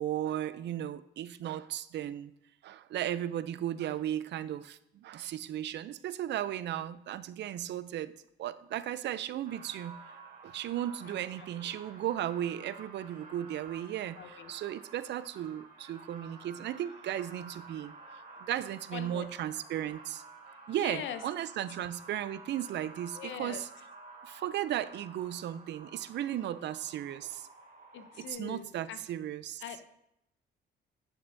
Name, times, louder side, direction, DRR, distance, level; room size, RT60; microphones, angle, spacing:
voice 1, 0.0-2.3 2.6-8.1 8.4-10.0 10.4-17.9 18.4-20.2 20.7-23.7 24.2-27.5 28.0-29.6, right 11 dB, 60° right, 15 dB, 0.4 m, -35 dB
sound 1, 9.4-28.3, right 3 dB, 45° right, 1.7 m, -51 dB
voice 2, 11.0-11.7 14.1-14.5 18.9-19.3 20.7-21.2 21.7-21.8 23.1-23.6 27.9-29.0 29.6-29.9, left 9 dB, 75° left, 10 dB, 0.6 m, -43 dB
9.9 x 5.4 x 2.6 m, 0.79 s
cardioid pair, 90°, 20 cm